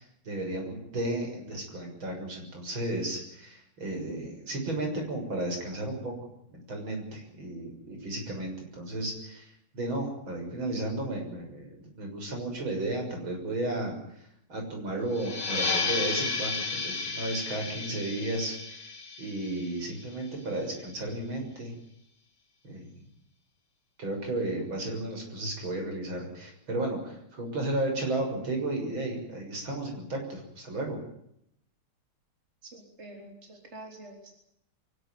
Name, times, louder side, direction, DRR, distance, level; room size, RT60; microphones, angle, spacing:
voice 1, 0.0-6.1 6.5-21.7 22.6-23.0 24.0-31.0, right 1 dB, 65° right, 2 dB, 7.4 m, -34 dB
sound 1, 15.1-20.4, left 4 dB, 75° left, 3.7 m, -33 dB
voice 2, 32.7-34.4, right 1 dB, 30° right, 2 dB, 4.1 m, -47 dB
24.5 x 16.5 x 9.4 m, 0.75 s
omnidirectional pair, 2.3 m